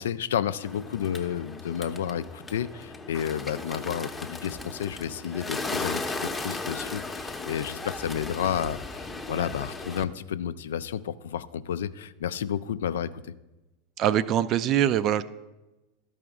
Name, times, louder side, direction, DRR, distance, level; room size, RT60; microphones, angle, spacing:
voice 1, 0.0-13.3, left 9 dB, 75° left, 14 dB, 0.3 m, -31 dB
Bird, 0.6-10.0, left 3 dB, 15° left, 0.7 m, -36 dB
voice 2, 14.0-15.2, right 10 dB, 45° right, 16 dB, 0.4 m, -23 dB
12.5 x 4.9 x 3.6 m, 1.0 s
hypercardioid pair, 90°, 0 cm